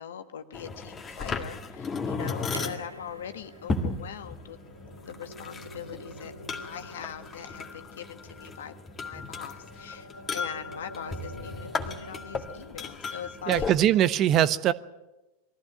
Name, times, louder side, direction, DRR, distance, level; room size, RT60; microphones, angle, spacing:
voice 1, 0.0-4.6 5.1-6.3 6.6-13.7, left 9 dB, 60° left, 1.4 m, -42 dB
sound 1, 0.5-13.7, left 4 dB, 20° left, 1.9 m, -36 dB
sound 2, 2.5-5.7 6.9-7.0, right 2 dB, 80° right, 0.7 m, -46 dB
sound 3, 4.2-12.8, equal, 90° left, 1.1 m, -47 dB
voice 2, 13.5-14.7, right 11 dB, 35° right, 0.8 m, -22 dB
22.0 x 15.0 x 9.1 m
figure-of-eight pair, 90°, 0 cm